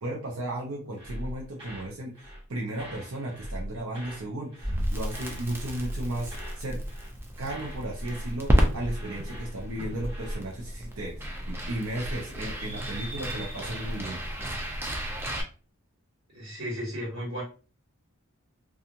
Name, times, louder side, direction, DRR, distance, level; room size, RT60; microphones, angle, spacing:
voice 1, 0.0-6.8 7.4-14.2, right 1 dB, 75° right, -2 dB, 0.6 m, -35 dB
sound 1, 1.0-2.5 2.7-4.3 4.5-4.8 5.1-6.6 6.9-7.2 7.4-10.4, equal, 25° right, 1.0 m, -41 dB
Crackle, 4.6-15.4, equal, 10° right, 0.4 m, -31 dB
voice 2, 16.3-17.4, equal, 55° right, -5 dB, 1.4 m, -34 dB
2.8 x 2.4 x 2.5 m, 0.37 s
head